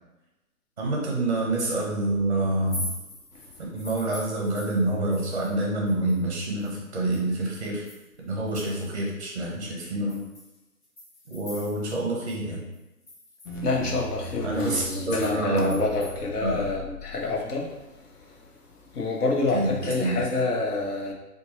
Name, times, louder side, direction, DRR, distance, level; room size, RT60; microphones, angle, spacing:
voice 1, 0.8-2.9 3.7-7.8 8.2-10.2 11.3-12.6 14.4-15.8 16.4-16.7 19.5-20.2, right 2 dB, 25° right, -3 dB, 0.5 m, -27 dB
sound 1, 2.5-5.6 5.9-9.1 9.5-9.6 10.1-12.0 12.3-12.4 12.7-16.1, left 1 dB, 20° left, 1.2 m, -43 dB
sound 2, 13.5-17.7, right 1 dB, 55° left, 0.7 m, -38 dB
voice 2, 13.6-17.7 19.0-21.1, left 3 dB, 80° left, -1 dB, 1.1 m, -27 dB
4.2 x 2.2 x 3.0 m, 1.0 s
hypercardioid pair, 160°, 45 cm